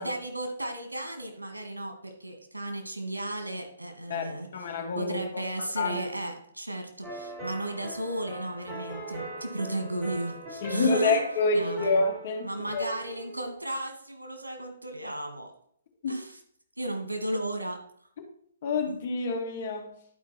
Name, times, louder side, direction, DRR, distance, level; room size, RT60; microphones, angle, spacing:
voice 1, 0.0-4.5 5.0-11.2 11.5-12.0 12.4-15.5 16.1-16.4 16.8-17.8 18.9-19.0, right 1 dB, 90° right, 2.3 m, -34 dB
voice 2, 4.1-5.4 5.8-6.1 10.6-12.9 16.0-16.2 18.6-19.9, left 3 dB, 45° left, 2.0 m, -28 dB
sound 1, 7.0-13.6, right 2 dB, 20° right, 4.4 m, -41 dB
11.0 x 5.1 x 4.4 m
figure-of-eight pair, 130°, 0 cm